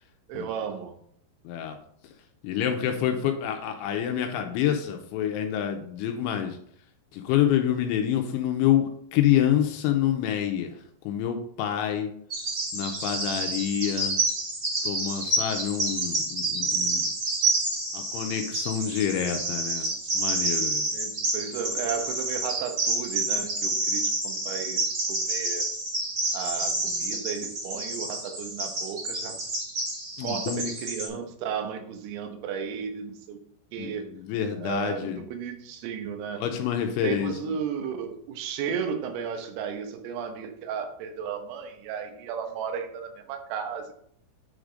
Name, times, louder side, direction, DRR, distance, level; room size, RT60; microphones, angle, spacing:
voice 1, 0.3-1.0 20.9-25.7 26.3-29.4 30.2-33.4 33.7-34.1 34.6-36.4 37.0-43.9, right 7 dB, 90° right, 6 dB, 3.6 m, -34 dB
voice 2, 1.4-1.8 2.4-6.6 7.1-10.8 11.0-12.1 12.7-14.2 14.8-17.0 17.9-20.9 30.2-30.7 31.1-31.2 33.8-35.2 36.4-37.5, left 10 dB, 80° left, 5 dB, 2.9 m, -27 dB
Bird vocalization bird call bird song, 12.3-31.1, right 2 dB, 40° right, 1.8 m, -29 dB
9.7 x 4.8 x 3.8 m, 0.65 s
omnidirectional pair, 5.8 m